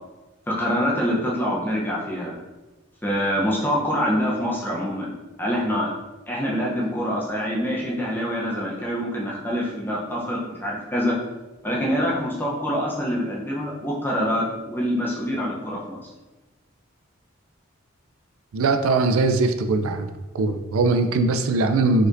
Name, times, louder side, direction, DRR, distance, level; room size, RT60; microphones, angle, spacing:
voice 1, 0.5-2.3 3.0-5.1 5.4-5.9 6.3-11.1 11.6-16.0, equal, 10° left, -4 dB, 0.7 m, -25 dB
voice 2, 18.5-20.1 20.3-22.1, right 3 dB, 80° right, 7 dB, 0.4 m, -21 dB
4.8 x 4.2 x 2.6 m, 1.1 s
head